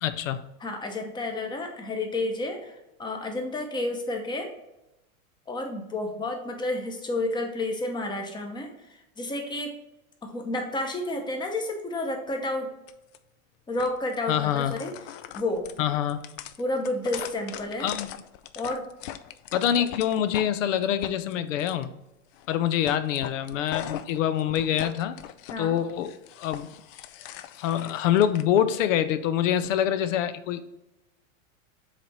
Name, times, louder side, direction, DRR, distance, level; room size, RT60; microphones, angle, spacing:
voice 1, 0.0-0.4 14.3-14.7 15.8-16.2 17.8-18.1 19.5-21.9 22.5-25.2 25.6-26.1 26.4-26.7 27.6-30.6, left 10 dB, 70° left, 13 dB, 0.7 m, -25 dB
voice 2, 0.6-4.5 5.5-9.7 10.2-12.7 13.7-14.9 15.3-15.7 16.6-17.9 18.5-18.8 25.5-25.8, left 2 dB, 10° left, 4 dB, 0.8 m, -31 dB
sound 1, 12.9-13.2 13.8-14.2 14.5-20.5 20.8-21.8 22.3-22.6 22.8-25.6 25.9-28.4, left 11 dB, 45° left, 0.4 m, -40 dB
7.5 x 3.4 x 4.1 m, 0.91 s
supercardioid pair, 135°, 40 cm